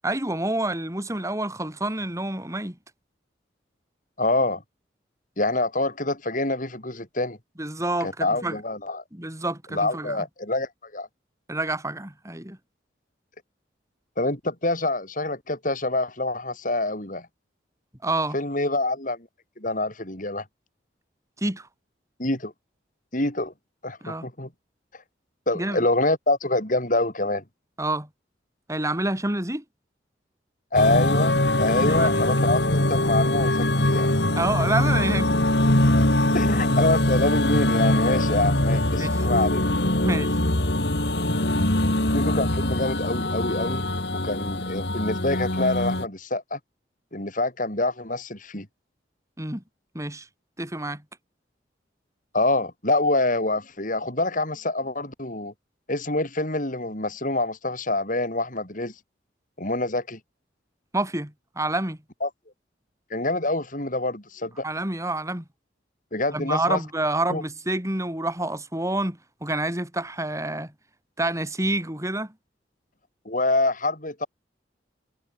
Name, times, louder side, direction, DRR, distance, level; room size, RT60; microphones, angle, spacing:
voice 1, 0.0-2.8 7.6-8.6 9.1-10.2 11.5-12.6 18.0-18.4 21.4-21.7 24.0-24.3 25.5-25.8 27.8-28.1 28.7-29.6 31.9-32.2 34.4-35.3 39.0-39.3 40.0-40.4 49.4-49.6 49.9-50.3 50.6-51.0 60.9-62.0 64.6-65.4 66.3-70.7 71.2-72.3, right 2 dB, 15° right, 4.8 m, -28 dB
voice 2, 4.2-4.6 5.4-7.4 8.0-9.0 9.7-11.1 14.2-17.3 18.3-19.3 19.6-20.4 22.2-22.5 23.1-23.5 23.8-24.5 25.5-27.4 30.7-34.1 36.3-39.7 42.1-43.9 44.2-46.6 47.1-48.7 52.3-55.5 55.9-58.9 59.6-60.2 62.2-62.3 63.1-64.6 66.1-66.8 67.3-67.4 73.2-74.3, left 2 dB, 45° left, 6.5 m, -26 dB
sound 1, 30.7-46.0, left 1 dB, 65° left, 3.7 m, -22 dB
head